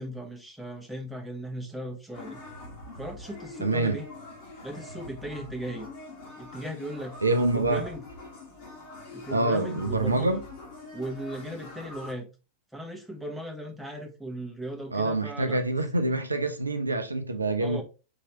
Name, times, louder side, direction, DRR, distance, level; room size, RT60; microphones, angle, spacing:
voice 1, 0.0-2.4 3.0-4.1 4.6-5.9 6.4-8.0 9.1-10.4 10.9-12.3 12.7-15.6 17.6-17.8, right 1 dB, ahead, 1.0 m, -37 dB
sound 1, 2.1-12.1, left 2 dB, 50° left, 1.8 m, -44 dB
voice 2, 3.6-4.0 7.2-7.9 9.3-10.4 14.9-17.8, right 2 dB, 80° right, 0.5 m, -26 dB
4.6 x 3.0 x 2.9 m
figure-of-eight pair, 90°, 0 cm